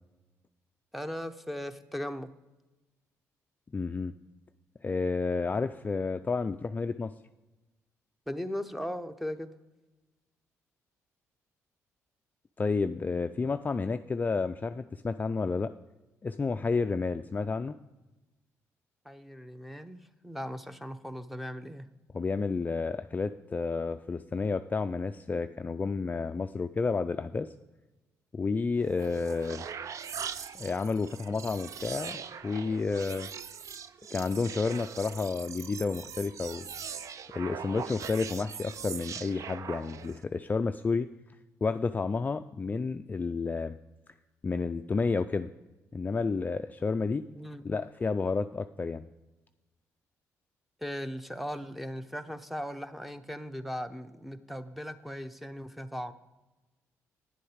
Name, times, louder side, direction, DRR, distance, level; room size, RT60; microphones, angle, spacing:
voice 1, 0.9-2.3 8.3-9.5 19.0-21.9 47.3-47.6 50.8-56.1, equal, ahead, 10 dB, 0.7 m, -38 dB
voice 2, 3.7-4.1 4.8-7.1 12.6-15.7 16.2-17.7 22.1-27.5 28.3-29.7 30.5-33.3 34.1-36.6 37.3-41.1 41.6-43.8 44.4-45.5 45.9-47.2 47.6-49.0, left 4 dB, 25° left, 9 dB, 0.3 m, -31 dB
sound 1, 28.8-40.2, right 7 dB, 55° right, 0.5 m, -41 dB
9.8 x 7.7 x 4.9 m, 1.1 s
supercardioid pair, 70°, 6 cm